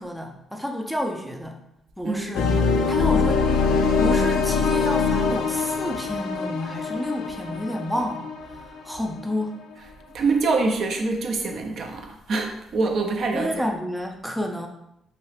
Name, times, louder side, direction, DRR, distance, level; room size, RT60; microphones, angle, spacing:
voice 1, 0.0-1.6 2.0-2.5 2.9-3.7 4.0-9.7 13.3-14.7, equal, 5° right, 3 dB, 0.4 m, -30 dB
voice 2, 2.0-2.3 10.1-13.5, right 3 dB, 60° right, 3 dB, 0.5 m, -25 dB
sound 1, 2.3-9.2, left 4 dB, 90° left, 0.3 m, -23 dB
3.0 x 2.4 x 3.2 m, 0.81 s
cardioid pair, 90°, 0 cm